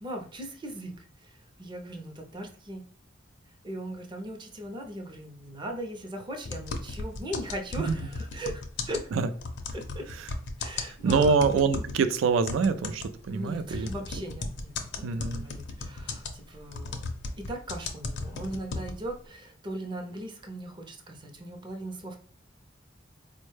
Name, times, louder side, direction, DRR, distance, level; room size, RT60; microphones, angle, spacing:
voice 1, 0.0-2.8 3.6-9.1 9.7-10.1 10.6-11.3 13.3-17.0 17.4-22.2, right 1 dB, 25° right, 2 dB, 0.5 m, -39 dB
sound 1, 6.4-12.0 12.5-19.2, left 3 dB, 60° left, 0.5 m, -35 dB
voice 2, 11.0-13.9 15.0-15.5, right 5 dB, 85° right, 11 dB, 0.3 m, -25 dB
4.2 x 2.1 x 3.1 m, 0.44 s
head